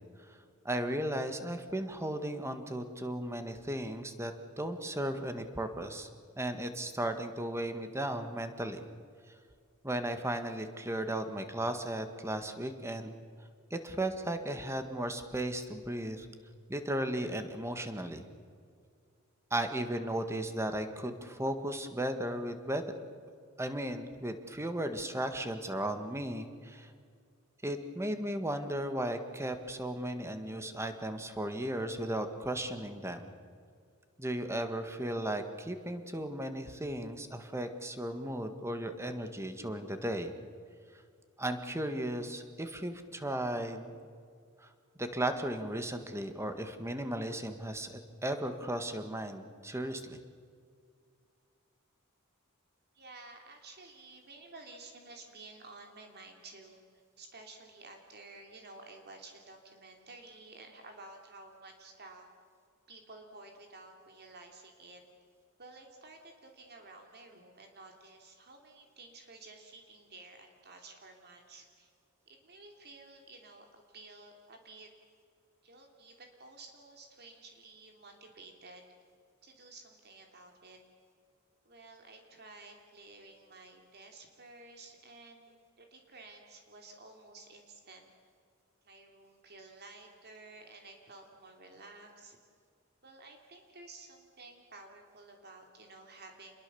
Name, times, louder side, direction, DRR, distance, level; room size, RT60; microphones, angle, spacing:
voice 1, 0.7-6.1 6.4-8.8 9.8-13.2 13.7-16.3 16.7-18.3 19.5-22.8 23.6-26.9 27.6-33.3 34.2-40.4 41.4-44.0 44.6-50.2, right 1 dB, 15° right, 8 dB, 1.7 m, -35 dB
voice 2, 52.9-56.8 57.2-62.3 62.9-65.0 65.6-71.9 72.3-74.9 75.6-78.8 79.4-80.8 81.6-88.1 88.8-92.4 93.0-96.6, right 3 dB, 50° right, 3 dB, 3.0 m, -53 dB
28.0 x 21.5 x 7.1 m, 2.2 s
head